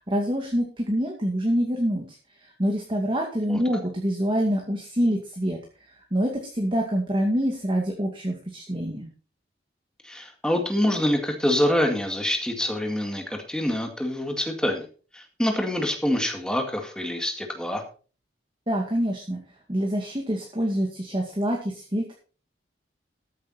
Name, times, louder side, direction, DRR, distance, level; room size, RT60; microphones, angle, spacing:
voice 1, 0.1-2.0 2.4-5.6 6.1-9.1 18.7-19.4 19.7-22.1, equal, 25° right, 0 dB, 2.2 m, -26 dB
voice 2, 10.0-14.9 15.1-17.8, left 1 dB, 5° left, 4 dB, 2.1 m, -26 dB
14.0 x 8.5 x 4.2 m, 0.38 s
head